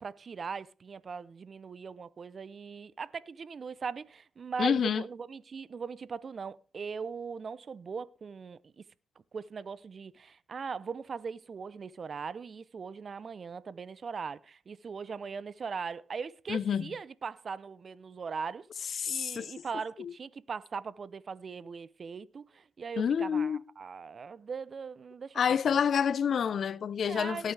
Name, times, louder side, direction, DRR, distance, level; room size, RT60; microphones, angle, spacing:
voice 1, 0.0-8.8 9.3-25.4 25.7-25.8 27.0-27.5, right 5 dB, 50° right, 0.8 m, -40 dB
voice 2, 4.6-5.0 16.5-16.9 19.0-19.5 20.0-20.1 23.0-23.6 25.4-27.5, left 7 dB, 60° left, 0.7 m, -28 dB
18.5 x 9.3 x 3.4 m
supercardioid pair, 55°, 0 cm